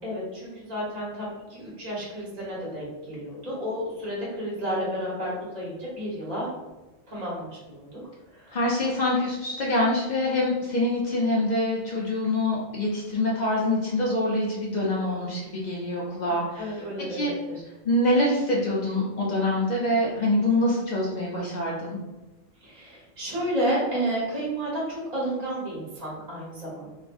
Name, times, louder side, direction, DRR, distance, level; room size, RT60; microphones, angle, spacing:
voice 1, 0.0-6.5 7.1-8.0 8.3-8.5 16.3-17.5 22.6-26.9, equal, 35° right, -6 dB, 1.0 m, -31 dB
voice 2, 8.5-16.8 17.1-17.3 17.8-22.0, left 1 dB, 65° left, -4 dB, 0.4 m, -25 dB
2.6 x 2.4 x 2.5 m, 1.1 s
omnidirectional pair, 1.3 m